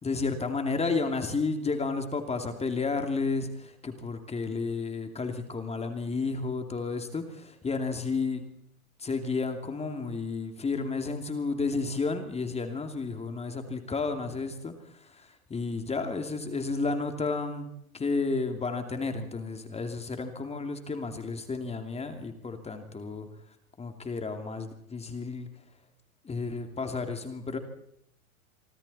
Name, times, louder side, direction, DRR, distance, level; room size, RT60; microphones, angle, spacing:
voice 1, 0.0-8.4 9.0-17.7 17.9-23.3 23.8-25.5 26.2-27.6, left 4 dB, 15° left, 6 dB, 2.8 m, -32 dB
26.0 x 25.0 x 4.3 m, 0.75 s
hypercardioid pair, 110°, 43 cm